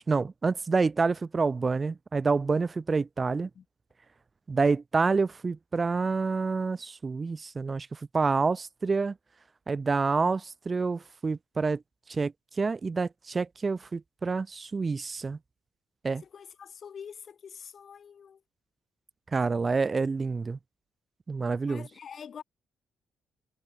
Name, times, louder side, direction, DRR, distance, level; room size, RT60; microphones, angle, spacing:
voice 1, 0.0-3.5 4.5-9.1 9.7-11.8 12.1-15.4 16.0-16.2 19.3-20.6 21.3-21.9, right 4 dB, 30° right, 0.8 m, -28 dB
voice 2, 16.2-18.4 21.7-22.4, left 7 dB, 50° left, 2.8 m, -45 dB
cardioid pair, 90°, 0 cm